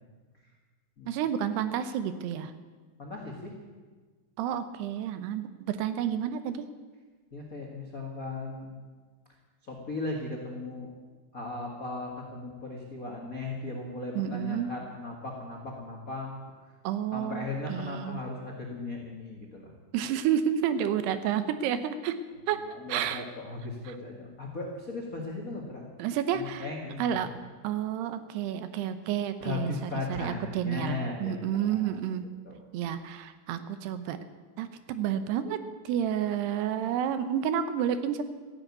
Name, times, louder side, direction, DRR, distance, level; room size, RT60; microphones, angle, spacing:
voice 1, 1.1-2.5 4.4-6.6 14.1-14.7 16.8-18.2 19.9-22.2 22.5-22.6 22.9-23.2 23.9-24.0 26.0-26.7 27.0-27.3 27.6-32.3 32.7-34.2 34.6-35.6 35.8-38.2, right 9 dB, 80° right, 11 dB, 2.9 m, -30 dB
voice 2, 3.0-3.5 7.3-8.8 9.7-10.9 11.3-16.3 17.1-19.7 22.7-25.9 26.3-27.2 29.4-31.9 32.4-32.6, left 3 dB, 55° left, 0 dB, 0.9 m, -37 dB
14.5 x 11.0 x 8.5 m, 1.4 s
omnidirectional pair, 4.8 m